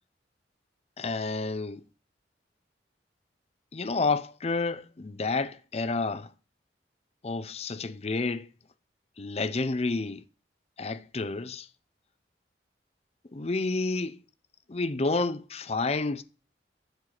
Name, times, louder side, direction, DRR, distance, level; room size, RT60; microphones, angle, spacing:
voice 1, 1.0-1.8 3.7-6.3 7.2-8.5 9.2-10.2 10.8-11.7 13.3-14.2 14.7-16.2, left 3 dB, 35° left, 0.5 m, -30 dB
10.5 x 4.7 x 6.5 m
head